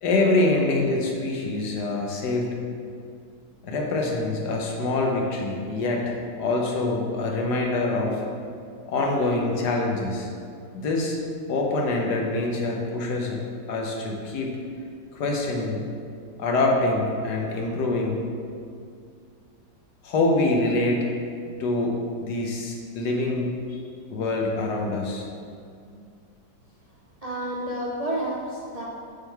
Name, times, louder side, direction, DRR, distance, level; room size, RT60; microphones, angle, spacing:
voice 1, 0.0-2.6 3.6-8.2 8.9-10.3 10.7-11.2 11.5-13.4 13.7-14.5 15.1-15.9 16.4-18.2 20.0-21.1 21.6-23.8 24.1-25.3, left 2 dB, 65° left, 0 dB, 1.4 m, -25 dB
voice 2, 27.2-28.8, right 1 dB, 55° right, -6 dB, 0.4 m, -30 dB
8.9 x 3.8 x 4.6 m, 2.3 s
omnidirectional pair, 2.0 m